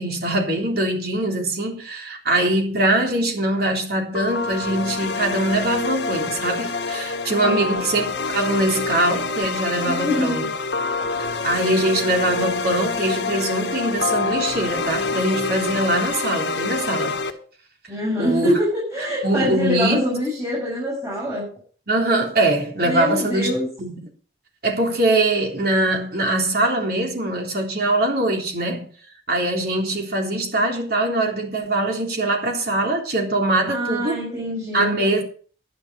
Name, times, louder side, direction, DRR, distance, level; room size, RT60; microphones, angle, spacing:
voice 1, 0.0-10.5 11.4-17.2 18.2-18.5 19.0-20.0 21.9-24.0 24.6-28.9 29.3-34.2 34.7-35.2, right 1 dB, 60° right, 3.5 m, -22 dB
sound 1, 4.1-17.3, left 4 dB, 80° left, 1.7 m, -26 dB
voice 2, 7.4-7.8 9.9-10.5 17.9-21.4 22.8-23.7 33.7-34.9, equal, 15° right, 6.7 m, -24 dB
11.5 x 10.5 x 5.5 m
head